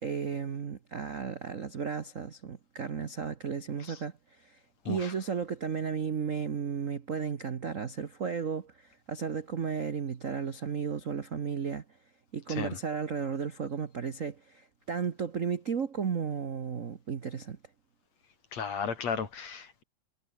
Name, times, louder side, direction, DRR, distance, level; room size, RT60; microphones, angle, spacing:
voice 1, 0.0-4.1 4.4-4.6 4.8-11.8 12.3-17.6, right 6 dB, 80° right, 0.7 m, -34 dB
voice 2, 18.5-19.8, left 6 dB, 65° left, 4.4 m, -35 dB
omnidirectional pair, 3.3 m